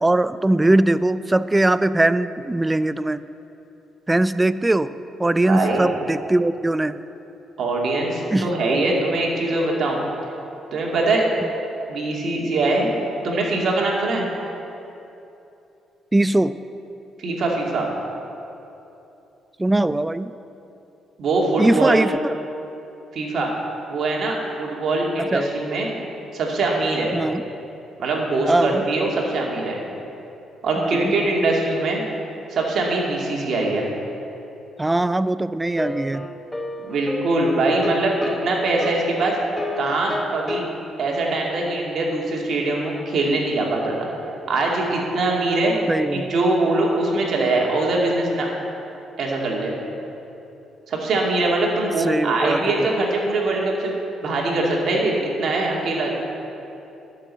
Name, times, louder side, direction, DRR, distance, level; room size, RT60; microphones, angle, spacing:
voice 1, 0.0-3.2 4.1-4.9 5.2-6.9 8.3-8.5 16.1-16.5 19.6-20.3 21.6-22.3 25.2-25.4 27.1-27.4 28.5-28.8 30.8-31.0 34.8-36.3 45.9-46.3 52.0-52.9, right 2 dB, 15° right, 14 dB, 0.4 m, -20 dB
voice 2, 5.4-5.9 7.6-10.0 10.7-11.2 11.9-12.9 13.2-14.2 17.2-17.9 21.2-22.0 23.1-23.5 23.9-25.9 26.3-27.1 28.0-29.8 30.6-32.0 32.5-33.9 36.8-39.4 39.8-40.7 41.0-44.1 44.5-45.7 46.1-48.5 49.2-49.7 50.9-54.0 54.2-56.1, right 2 dB, 60° right, -1 dB, 2.2 m, -22 dB
sound 1, 35.8-40.7, left 2 dB, 10° left, 0.8 m, -31 dB
11.5 x 6.2 x 7.5 m, 2.9 s
cardioid pair, 90°, 0 cm